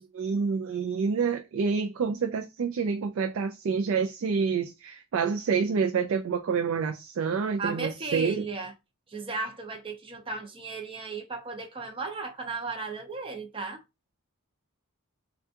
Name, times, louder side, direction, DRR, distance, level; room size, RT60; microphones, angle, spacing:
voice 1, 0.1-8.4, right 5 dB, 65° right, 0.3 m, -28 dB
voice 2, 7.6-8.7 9.1-13.8, right 3 dB, 25° right, 0.6 m, -35 dB
3.4 x 2.3 x 2.7 m
head